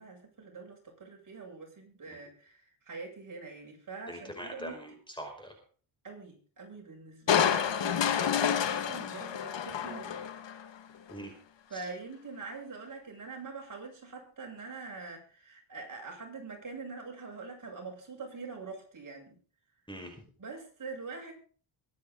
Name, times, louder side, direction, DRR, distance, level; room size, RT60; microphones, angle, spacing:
voice 1, 0.0-4.8 6.0-10.2 11.7-19.4 20.4-21.3, right 4 dB, 40° right, 1 dB, 7.8 m, -44 dB
voice 2, 4.1-5.5 11.1-11.3 11.7-11.9 19.9-20.2, equal, 10° left, 3 dB, 5.2 m, -43 dB
Crushing, 7.3-10.7 11.1-11.2, left 8 dB, 60° left, 2.3 m, -29 dB
23.5 x 9.9 x 4.1 m, 0.42 s
cardioid pair, 85°, 48 cm